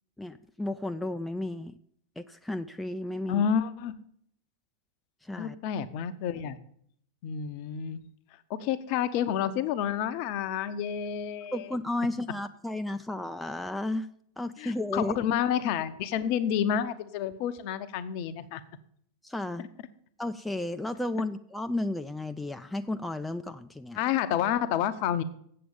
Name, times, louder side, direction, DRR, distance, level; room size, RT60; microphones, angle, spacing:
voice 1, 0.2-1.7 2.2-3.5 5.2-5.6 11.5-14.1 14.4-15.2 19.2-19.7 20.2-24.0, left 1 dB, 5° left, 8 dB, 0.4 m, -33 dB
voice 2, 3.3-3.9 5.4-6.6 7.2-8.0 8.5-11.7 14.6-18.6 23.9-25.2, left 9 dB, 45° left, 12 dB, 0.7 m, -29 dB
7.7 x 7.6 x 7.0 m, 0.65 s
figure-of-eight pair, 90°, 0 cm